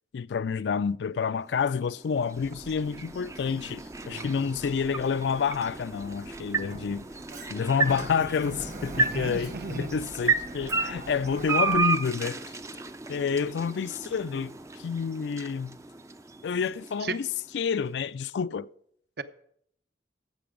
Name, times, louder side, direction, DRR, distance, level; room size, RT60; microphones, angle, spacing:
voice 1, 0.1-7.1 7.5-12.4 13.1-15.8 16.4-17.3 17.5-18.7, left 6 dB, 75° left, 0.3 m, -29 dB
sound 1, 1.4-17.6, right 4 dB, 15° right, 0.4 m, -33 dB
Sliding door, 2.4-11.8, right 2 dB, 40° right, 1.3 m, -44 dB
voice 2, 4.1-4.6 8.9-10.0 17.0-17.2 19.2-19.3, right 3 dB, 60° right, 0.7 m, -36 dB
14.5 x 6.1 x 5.0 m
head